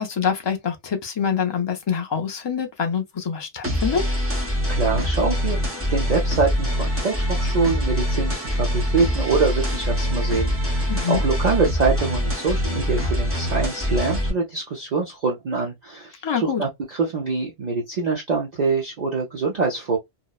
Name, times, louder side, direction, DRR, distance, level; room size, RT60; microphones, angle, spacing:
voice 1, 0.0-4.0 10.9-11.2 16.2-16.6, left 7 dB, 45° left, 0.3 m, -25 dB
sound 1, 3.6-14.3, equal, 15° right, 0.8 m, -24 dB
voice 2, 4.7-5.6 5.9-20.0, right 4 dB, 45° right, 0.6 m, -24 dB
2.8 x 2.0 x 2.3 m
omnidirectional pair, 1.2 m